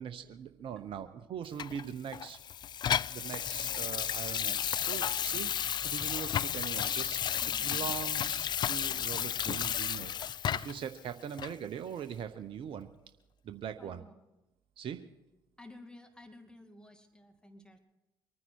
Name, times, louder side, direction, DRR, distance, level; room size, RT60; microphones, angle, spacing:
voice 1, 0.0-2.4 3.1-5.5 5.8-7.2 7.6-10.1 10.5-12.9 13.4-14.0 14.8-15.0, right 8 dB, 55° right, 8 dB, 0.9 m, -41 dB
Water tap faucet / Sink (filling or washing), 1.6-10.9 11.4-11.5, left 9 dB, 45° left, 0.4 m, -33 dB
voice 2, 7.4-7.7 13.8-14.2 15.6-17.8, left 2 dB, 10° left, 5 dB, 2.5 m, -53 dB
24.0 x 9.7 x 4.7 m, 0.97 s
hypercardioid pair, 50°, 10 cm